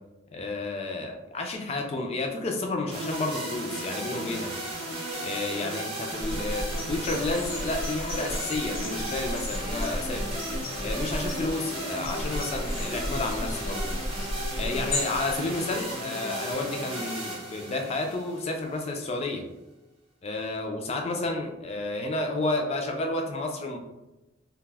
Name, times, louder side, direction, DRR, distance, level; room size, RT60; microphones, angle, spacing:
voice 1, 0.3-4.5 5.2-10.3 10.8-14.0 14.6-19.4 20.2-23.8, left 2 dB, 30° left, 3 dB, 0.3 m, -31 dB
sound 1, 2.9-18.9, right 1 dB, 25° right, 0.6 m, -35 dB
sound 2, 6.2-16.0, left 1 dB, 65° left, 0.7 m, -34 dB
2.2 x 2.0 x 3.2 m, 1.0 s
head